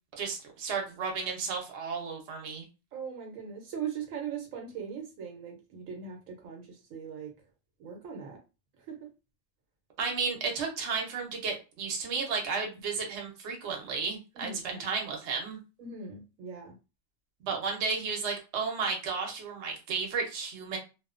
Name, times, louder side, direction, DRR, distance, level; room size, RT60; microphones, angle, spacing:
voice 1, 0.2-2.6 10.0-15.6 17.4-20.8, right 5 dB, 60° right, 1 dB, 1.0 m, -33 dB
voice 2, 2.9-7.3 7.8-8.4 8.9-9.1 14.4-14.8 15.8-16.7, right 6 dB, 80° right, 2 dB, 1.1 m, -40 dB
2.7 x 2.1 x 2.4 m, 0.30 s
omnidirectional pair, 1.4 m